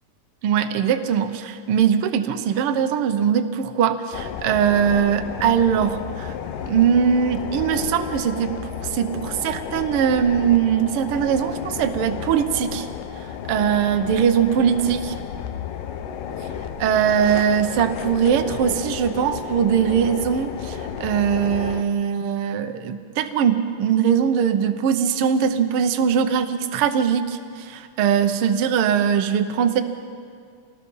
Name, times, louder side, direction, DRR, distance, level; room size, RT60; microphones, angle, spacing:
voice 1, 0.4-6.3 6.7-8.6 8.8-12.9 13.5-15.1 16.8-29.8, right 8 dB, 70° right, 8 dB, 1.3 m, -21 dB
sound 1, 4.1-21.8, left 8 dB, 80° left, 2.6 m, -32 dB
26.5 x 19.0 x 5.5 m, 2.1 s
omnidirectional pair, 3.8 m